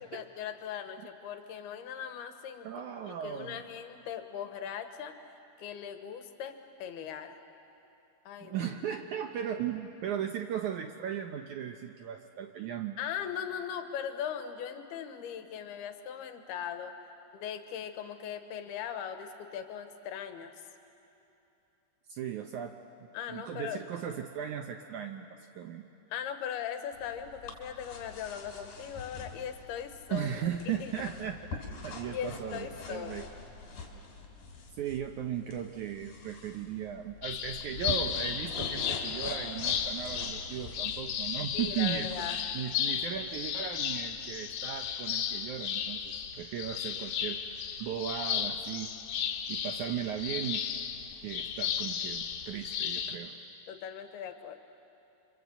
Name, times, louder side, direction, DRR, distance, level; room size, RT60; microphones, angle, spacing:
voice 1, 0.1-2.7 3.1-7.4 8.3-8.7 13.0-16.9 17.3-20.5 23.1-23.8 26.1-30.3 30.7-31.0 32.1-33.3 41.5-42.4 53.7-54.6, left 8 dB, 90° left, 7 dB, 3.3 m, -39 dB
voice 2, 2.6-3.6 8.4-13.0 22.1-25.9 30.1-33.3 34.7-47.4 47.8-48.9 49.5-50.6 51.2-53.4, right 9 dB, 75° right, 5 dB, 1.8 m, -37 dB
sound 1, 26.9-42.4, left 4 dB, 55° left, 4.6 m, -45 dB
sound 2, 37.2-53.2, left 8 dB, 70° left, 3.5 m, -34 dB
29.5 x 25.5 x 8.0 m, 2.9 s
omnidirectional pair, 4.5 m